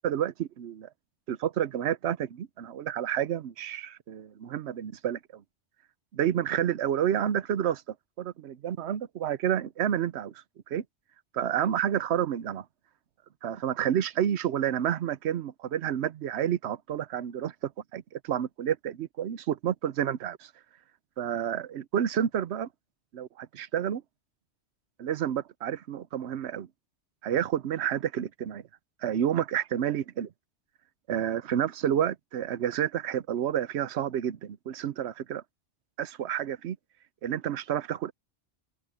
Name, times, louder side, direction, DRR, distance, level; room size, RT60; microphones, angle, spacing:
voice 1, 0.0-0.9 1.3-5.4 6.1-7.8 8.2-10.3 10.7-10.8 11.3-12.6 13.4-20.5 21.2-22.7 23.1-24.0 25.0-26.7 27.2-28.6 29.0-30.3 31.1-35.4 36.0-36.8 37.2-38.1, right 10 dB, 70° right, 1.0 m, -29 dB
open air
omnidirectional pair, 1.2 m